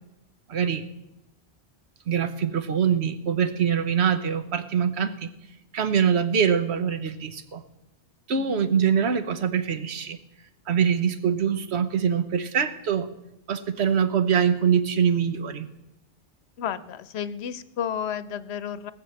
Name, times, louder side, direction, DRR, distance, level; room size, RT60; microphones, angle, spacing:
voice 1, 0.5-0.8 2.1-5.3 5.7-7.6 8.3-10.2 10.7-13.1 13.5-15.7, right 7 dB, 80° right, 11 dB, 1.2 m, -24 dB
voice 2, 16.6-18.9, left 8 dB, 80° left, 15 dB, 0.9 m, -32 dB
18.5 x 6.7 x 7.7 m, 0.90 s
omnidirectional pair, 1.1 m